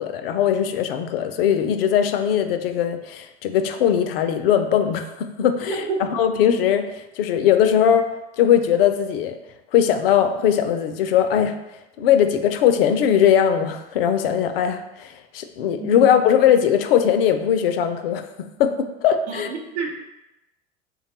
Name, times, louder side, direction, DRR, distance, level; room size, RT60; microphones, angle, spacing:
voice 1, 0.0-8.1 8.4-9.4 9.7-11.5 12.0-19.5, left 9 dB, 60° left, 8 dB, 0.4 m, -20 dB
voice 2, 19.3-20.0, right 4 dB, 80° right, 1 dB, 0.7 m, -29 dB
3.4 x 2.3 x 4.1 m, 0.96 s
figure-of-eight pair, 80°, 34 cm